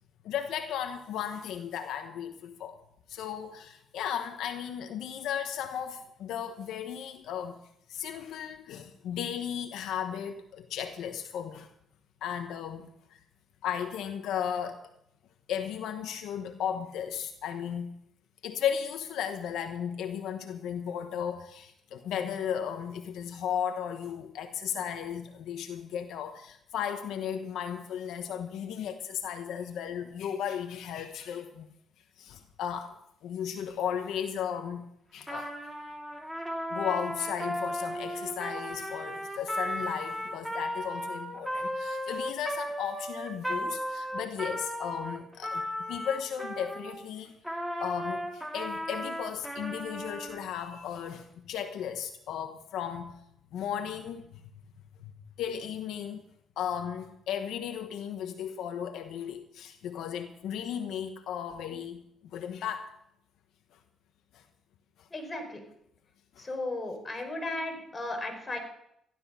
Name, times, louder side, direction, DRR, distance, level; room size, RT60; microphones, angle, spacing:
voice 1, 0.2-2.8 3.1-7.6 7.9-11.7 12.2-13.2 13.6-14.8 15.5-17.9 18.4-31.7 32.2-33.0 33.2-34.9 35.1-35.5 36.7-47.3 47.8-53.1 53.5-54.3 55.4-56.2 56.6-62.0 62.3-62.9 64.3-64.4 65.0-65.1 66.4-66.5, left 8 dB, 80° left, 7 dB, 1.1 m, -35 dB
Trumpet, 35.2-47.0 47.4-50.4, equal, ahead, 2.7 m, -35 dB
voice 2, 65.1-65.6 66.4-68.6, left 2 dB, 25° left, 3 dB, 4.8 m, -35 dB
15.0 x 12.0 x 5.7 m, 0.75 s
cardioid pair, 90°, 0 cm